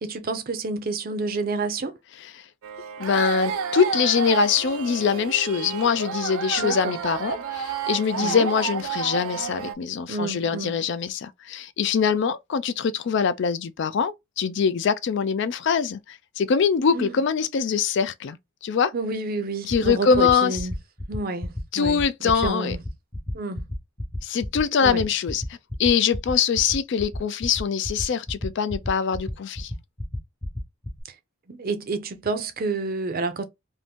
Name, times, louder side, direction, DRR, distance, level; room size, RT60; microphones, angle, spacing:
voice 1, 0.0-2.0 6.6-7.0 8.2-8.5 10.1-10.8 16.9-17.2 18.9-20.7 21.1-22.8 23.3-23.6 24.8-25.0 31.1-31.2 31.5-33.5, right 3 dB, 45° right, 0.5 m, -29 dB
sound 1, 2.6-9.7, right 6 dB, 90° right, 0.5 m, -30 dB
voice 2, 3.0-18.4 18.6-18.9 19.7-20.6 21.7-22.8 24.2-25.4 25.8-29.7, left 6 dB, 60° left, 0.3 m, -23 dB
sound 2, 19.7-31.0, left 1 dB, 15° left, 0.6 m, -31 dB
2.7 x 2.5 x 3.4 m
head